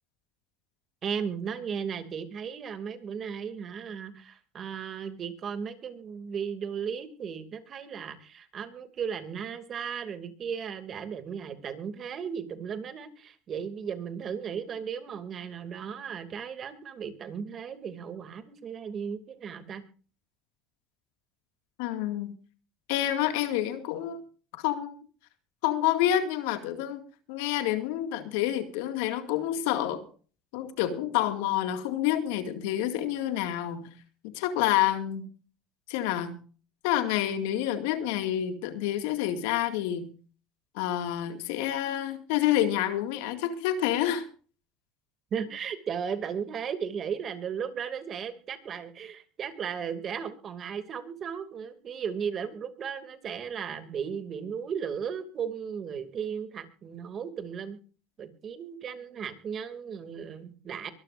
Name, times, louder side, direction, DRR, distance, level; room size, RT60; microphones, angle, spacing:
voice 1, 1.0-19.8 45.3-57.8 58.2-60.9, right 7 dB, 40° right, 2.6 m, -36 dB
voice 2, 21.8-22.3 22.9-24.2 24.5-24.9 25.6-30.1 30.5-33.9 34.3-35.3 35.9-36.4 36.8-40.1 40.7-44.3, left 12 dB, 80° left, 2.2 m, -28 dB
23.5 x 12.5 x 2.6 m
supercardioid pair, 100°, 0 cm